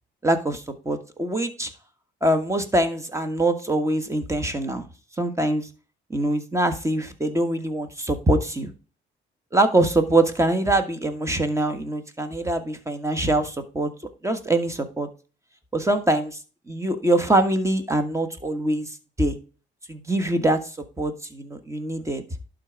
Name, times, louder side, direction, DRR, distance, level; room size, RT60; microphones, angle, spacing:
voice 1, 0.2-1.7 2.2-4.8 5.2-5.7 6.1-8.7 9.5-13.9 14.2-15.1 15.7-16.4 16.7-19.4 19.9-20.6 21.0-22.2, right 1 dB, 15° right, 9 dB, 1.4 m, -23 dB
11.5 x 3.9 x 4.6 m, 0.35 s
cardioid pair, 90°, 20 cm